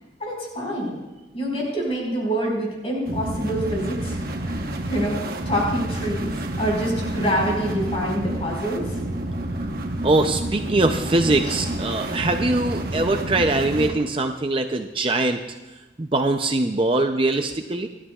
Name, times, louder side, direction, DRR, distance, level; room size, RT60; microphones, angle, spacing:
voice 1, 0.2-1.0 1.3-5.2 5.4-6.3 6.6-9.0 11.4-11.6, equal, 30° left, -2 dB, 5.0 m, -26 dB
sound 1, 3.1-13.9, right 1 dB, 50° right, 1.2 m, -29 dB
voice 2, 10.0-15.4 16.0-17.9, right 2 dB, 30° right, 5 dB, 0.5 m, -22 dB
28.0 x 12.5 x 2.4 m, 1.1 s
head